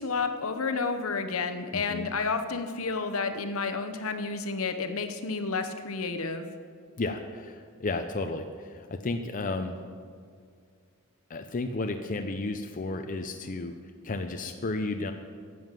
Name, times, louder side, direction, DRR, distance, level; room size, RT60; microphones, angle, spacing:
voice 1, 0.0-6.5, left 4 dB, 70° left, 8 dB, 0.9 m, -31 dB
voice 2, 1.7-2.1 7.0-9.8 11.3-13.8 14.0-15.1, left 2 dB, 40° left, 6 dB, 0.6 m, -33 dB
10.5 x 7.8 x 7.5 m, 2.1 s
head